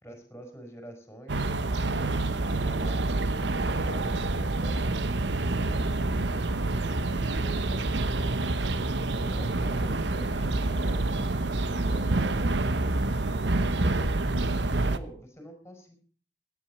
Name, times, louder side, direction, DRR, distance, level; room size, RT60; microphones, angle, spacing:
voice 1, 0.0-1.5 2.0-5.9 6.6-8.4 8.8-11.1 11.8-12.5 13.2-16.0, right 1 dB, 15° left, 4 dB, 5.0 m, -46 dB
sound 1, 1.3-15.0, right 2 dB, 85° right, 1.0 m, -27 dB
voice 2, 10.6-13.3, right 1 dB, 60° right, 5 dB, 4.9 m, -48 dB
17.0 x 10.5 x 5.9 m, 0.42 s
head